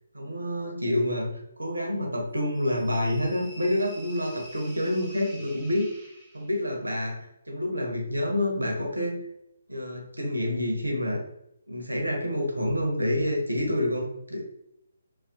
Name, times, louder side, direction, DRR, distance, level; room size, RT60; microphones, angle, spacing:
voice 1, 0.1-5.9 6.3-9.2 9.7-11.2 11.7-14.4, left 1 dB, 75° right, 0 dB, 0.7 m, -28 dB
sound 1, 2.5-6.7, right 1 dB, 5° right, 0.4 m, -48 dB
2.5 x 2.2 x 2.4 m, 0.81 s
figure-of-eight pair, 140°, 0 cm